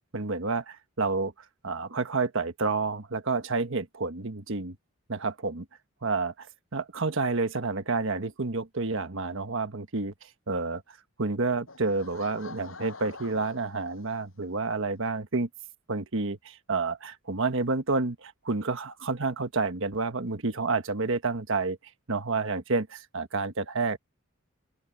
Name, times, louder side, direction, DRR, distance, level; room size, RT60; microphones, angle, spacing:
voice 1, 0.1-1.3 1.6-4.8 5.1-5.7 6.0-6.5 6.7-10.1 10.5-10.8 11.2-15.5 15.9-21.8 22.1-24.0, right 3 dB, 70° right, 1.4 m, -29 dB
Laughter / Crowd, 11.7-14.5, left 3 dB, 75° left, 7.5 m, -46 dB
open air
head